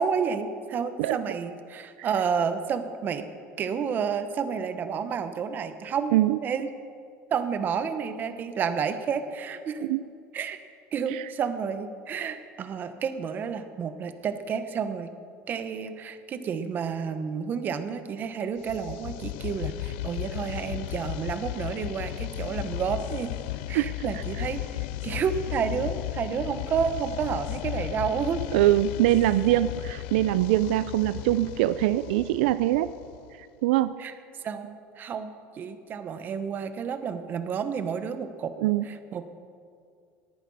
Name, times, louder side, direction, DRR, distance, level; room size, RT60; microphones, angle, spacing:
voice 1, 0.0-3.3 3.6-6.1 6.4-6.7 7.3-9.9 10.3-10.6 10.9-15.1 15.5-23.3 23.7-24.6 25.0-28.4 34.0-34.1 34.4-38.5 38.9-39.2, right 6 dB, 35° right, 10 dB, 1.1 m, -30 dB
sound 1, 18.6-33.4, left 16 dB, 80° left, 0.4 m, -35 dB
voice 2, 23.7-24.2 28.5-32.9 33.4-34.0 38.6-38.9, right 14 dB, 85° right, 14 dB, 0.4 m, -23 dB
18.0 x 11.0 x 5.6 m, 2.3 s
cardioid pair, 135°, 6 cm